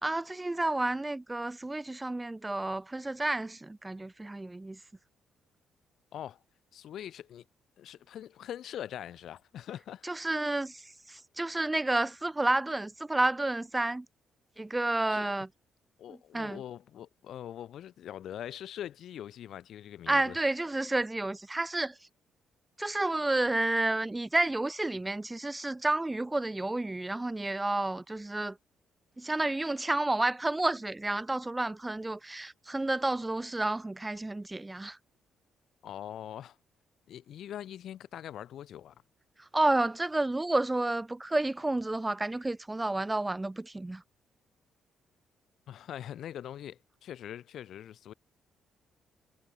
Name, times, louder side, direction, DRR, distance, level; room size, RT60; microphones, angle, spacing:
voice 1, 0.0-4.8 10.0-14.0 14.6-15.5 16.1-16.6 20.1-22.1 22.8-28.6 29.2-35.0 39.4-44.0, right 2 dB, 10° right, 1.2 m, -30 dB
voice 2, 6.7-7.4 7.8-10.1 15.1-15.3 16.0-20.4 35.8-36.6 37.1-38.9 45.7-48.1, left 10 dB, 60° left, 7.0 m, -42 dB
cardioid pair, 170°, 0 cm